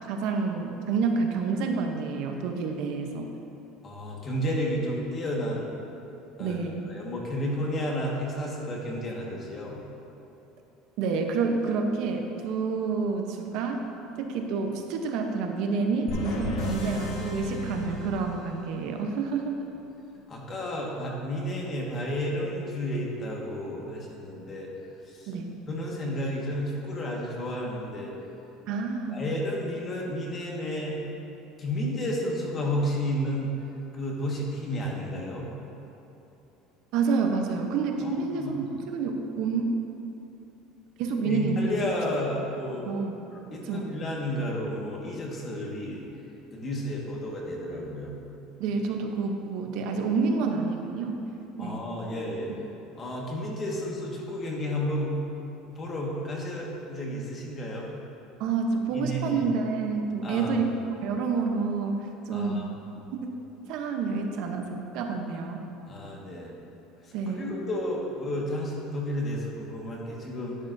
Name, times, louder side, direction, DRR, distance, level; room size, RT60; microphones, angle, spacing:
voice 1, 0.1-3.3 6.4-6.8 11.0-13.8 14.2-19.6 25.3-25.5 28.7-29.2 36.9-39.8 41.0-41.7 42.8-43.2 43.6-43.9 48.6-51.2 51.6-51.8 58.4-60.7 61.0-62.7 63.7-65.6 67.1-67.5, right 4 dB, 60° right, 3 dB, 0.8 m, -28 dB
voice 2, 3.8-5.7 6.4-6.6 6.9-9.8 20.3-24.7 25.1-25.3 25.7-28.1 29.1-31.0 31.6-33.5 33.9-35.5 38.0-38.5 41.2-42.9 43.3-46.1 46.5-48.2 51.6-52.5 53.0-55.2 55.7-57.9 59.0-59.4 60.2-60.6 62.3-62.7 65.9-66.5 67.3-70.6, equal, 30° left, -2 dB, 1.6 m, -32 dB
sound 1, 16.1-18.9, left 2 dB, 50° left, 1.5 m, -33 dB
11.0 x 10.5 x 2.7 m, 3.0 s
cardioid pair, 150°, 0 cm